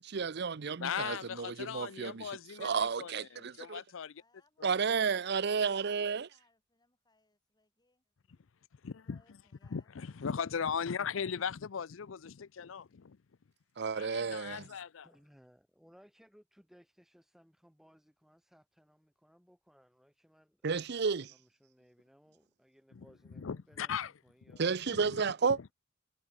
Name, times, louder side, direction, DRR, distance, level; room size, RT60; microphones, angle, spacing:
voice 1, 0.1-2.3 2.6-3.8 4.6-6.3 13.8-14.7 20.6-21.3 24.6-25.7, right 5 dB, 55° right, 0.6 m, -32 dB
voice 2, 0.8-4.2 4.6-4.7 8.8-9.2 9.7-13.2 13.9-15.1 22.9-23.1 23.3-24.1 24.5-24.6 24.9-25.2, left 7 dB, 75° left, 0.5 m, -38 dB
voice 3, 4.1-8.4 8.8-9.9 11.2-11.4, left 3 dB, 20° left, 5.8 m, -71 dB
voice 4, 15.0-24.0 24.2-25.1, equal, ahead, 4.6 m, -63 dB
head